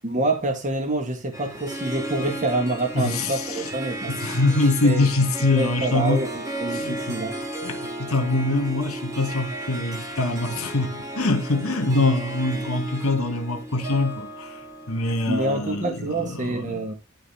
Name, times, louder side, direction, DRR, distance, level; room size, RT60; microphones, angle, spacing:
voice 1, 0.0-4.2 4.6-5.1 5.5-6.3 6.6-7.4 15.3-16.9, right 2 dB, 35° right, 1.4 m, -27 dB
Harp, 1.3-15.8, right 1 dB, 15° right, 2.5 m, -34 dB
voice 2, 2.9-3.7 4.1-6.2 6.7-7.2 7.6-16.8, left 2 dB, 75° left, 2.1 m, -24 dB
12.0 x 4.0 x 4.1 m
head